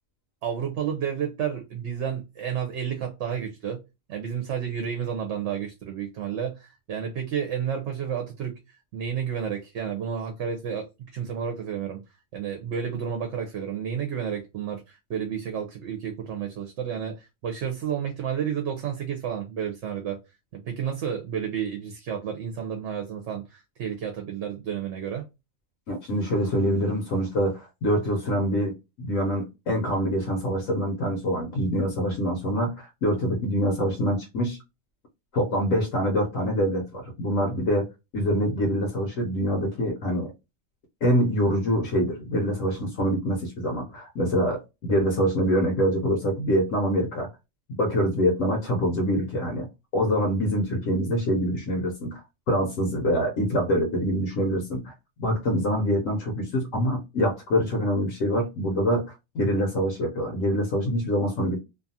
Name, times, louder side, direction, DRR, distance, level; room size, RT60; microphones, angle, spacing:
voice 1, 0.4-3.8 4.1-8.6 8.9-12.0 12.3-20.2 20.6-25.2, right 8 dB, 65° right, 0.9 m, -31 dB
voice 2, 25.9-34.6 35.3-37.9 38.1-40.3 41.0-47.3 47.7-49.7 49.9-52.2 52.5-54.9 55.2-61.6, equal, 75° left, 1.1 m, -25 dB
2.7 x 2.3 x 2.6 m
omnidirectional pair, 1.4 m